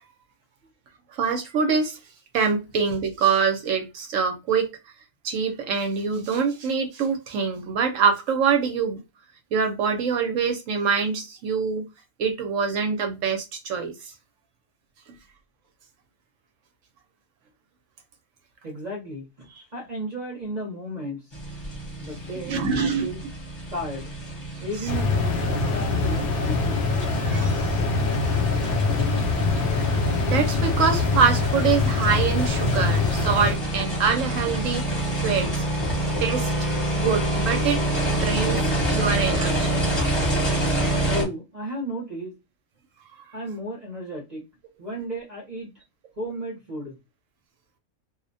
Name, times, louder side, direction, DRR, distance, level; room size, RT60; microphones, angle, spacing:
voice 1, 1.1-2.0 2.3-4.8 5.2-9.0 9.5-11.9 12.2-14.1 22.5-23.1 27.2-27.8 29.6-29.9 30.3-34.8 35.2-35.6 36.2-36.5 36.9-37.8 38.2-38.6 38.9-39.8, right 5 dB, 70° right, 0.9 m, -24 dB
voice 2, 18.6-21.2 22.0-23.2 23.7-24.1 24.6-26.9 41.1-42.4 43.3-44.4 44.8-45.7 46.2-47.0, equal, 40° right, 0.7 m, -34 dB
sound 1, 21.3-41.2, right 1 dB, 20° left, 0.8 m, -27 dB
sound 2, 24.9-33.5, left 4 dB, 70° left, 0.6 m, -24 dB
2.4 x 2.1 x 2.5 m
omnidirectional pair, 1.5 m